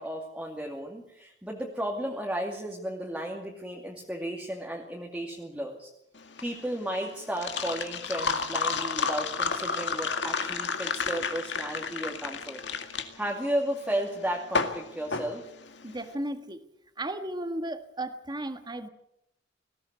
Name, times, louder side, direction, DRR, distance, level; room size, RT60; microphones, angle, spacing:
voice 1, 0.0-5.9 6.4-15.4, right 1 dB, 5° right, -1 dB, 2.4 m, -34 dB
sound 1, 6.2-16.0, left 5 dB, 65° left, 2.1 m, -31 dB
voice 2, 15.8-16.6 17.0-18.9, right 1 dB, 20° right, 8 dB, 1.6 m, -34 dB
19.5 x 16.5 x 8.1 m, 0.78 s
head